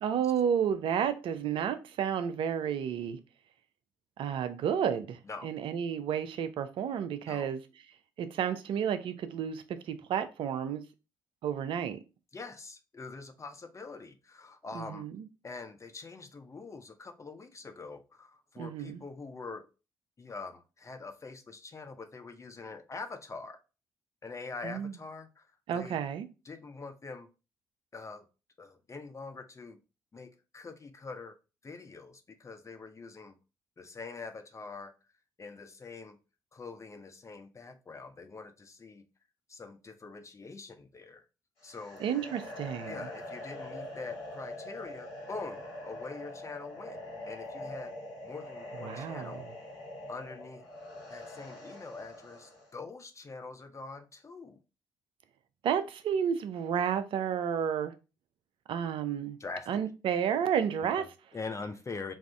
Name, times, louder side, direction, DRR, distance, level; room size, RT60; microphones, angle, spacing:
voice 1, 0.0-3.2 4.2-7.6 8.2-10.8 11.4-12.0 14.7-15.3 18.6-19.0 24.6-24.9 25.7-26.3 42.0-42.9 48.8-49.4 55.6-57.9 58.7-59.4 59.7-61.0, right 8 dB, 60° right, 0.5 m, -31 dB
voice 2, 12.3-15.1 15.4-19.7 20.2-23.6 24.2-26.0 26.4-27.3 27.9-28.3 28.6-29.8 30.1-31.4 31.6-33.4 33.8-34.9 35.4-36.2 36.5-39.0 39.5-41.2 41.6-42.0 42.9-48.0 48.2-49.4 50.1-50.7 51.1-54.6 59.4-59.8 60.8-62.1, left 4 dB, 30° left, 0.5 m, -44 dB
sound 1, 41.6-52.7, left 1 dB, 70° left, 1.9 m, -44 dB
3.5 x 2.5 x 3.3 m
hypercardioid pair, 45°, 10 cm